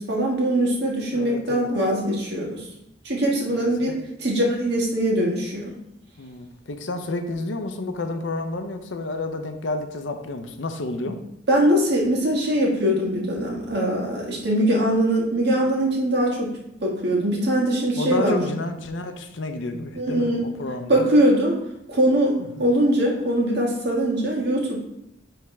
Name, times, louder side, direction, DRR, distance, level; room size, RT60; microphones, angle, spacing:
voice 1, 0.0-2.6 3.0-3.9 4.2-5.7 11.5-16.5 16.8-18.4 19.9-20.4 20.9-21.5 21.9-22.3 22.6-24.8, right 1 dB, 60° right, -2 dB, 1.7 m, -22 dB
voice 2, 1.1-1.7 3.5-4.0 6.2-11.2 18.0-21.1 22.4-22.6, left 2 dB, 70° left, 7 dB, 0.7 m, -30 dB
10.0 x 3.5 x 3.2 m, 0.80 s
head